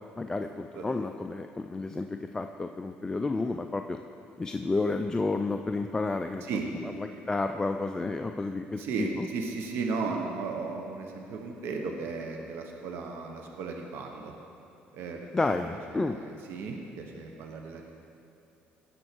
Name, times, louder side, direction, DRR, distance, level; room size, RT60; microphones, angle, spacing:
voice 1, 0.2-4.0 4.4-6.5 6.8-9.3 15.3-16.2, left 3 dB, 15° left, 5 dB, 0.4 m, -31 dB
voice 2, 8.8-14.3 14.9-15.3 15.7-17.9, right 4 dB, 70° right, 2 dB, 1.1 m, -35 dB
17.0 x 6.3 x 4.5 m, 2.8 s
cardioid pair, 105°, 4 cm